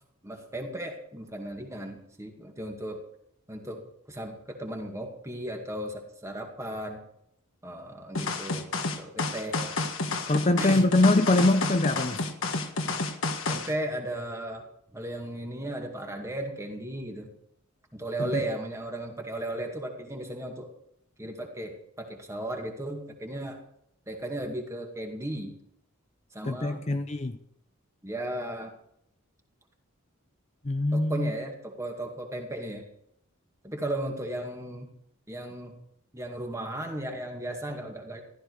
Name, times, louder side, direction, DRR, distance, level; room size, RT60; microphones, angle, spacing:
voice 1, 0.2-3.0 3.5-7.0 7.6-8.7 9.0-9.8 10.6-10.9 13.5-17.3 17.9-20.7 21.2-23.6 24.1-25.5 26.3-26.9 28.0-28.7 30.9-32.8 33.6-34.9 35.3-35.7 36.1-38.2, right 1 dB, 15° right, 2.2 m, -35 dB
sound 1, 8.1-13.7, left 3 dB, 65° left, 1.6 m, -30 dB
voice 2, 10.3-12.3 18.2-18.3 26.5-27.4 30.7-31.3, left 2 dB, 30° left, 0.7 m, -23 dB
15.0 x 13.0 x 4.9 m
head